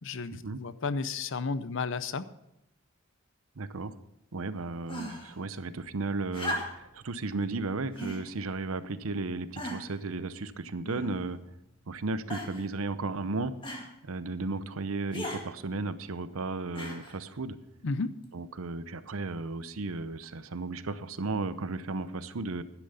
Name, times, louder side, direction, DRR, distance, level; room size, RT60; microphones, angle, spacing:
voice 1, 0.0-2.3 17.8-18.1, left 4 dB, 60° left, 15 dB, 0.6 m, -32 dB
voice 2, 3.6-3.9 4.3-11.4 11.9-13.5 14.0-17.6 18.3-22.6, right 3 dB, 75° right, 13 dB, 0.8 m, -34 dB
sound 1, 4.9-5.4 6.3-7.0 7.9-8.3 9.0-9.1 9.5-10.0 10.8-11.4 12.3-12.7 13.6-13.9 15.1-15.4 16.7-17.2 18.2-18.3, equal, 25° left, 2.1 m, -37 dB
12.0 x 10.0 x 5.6 m, 0.84 s
head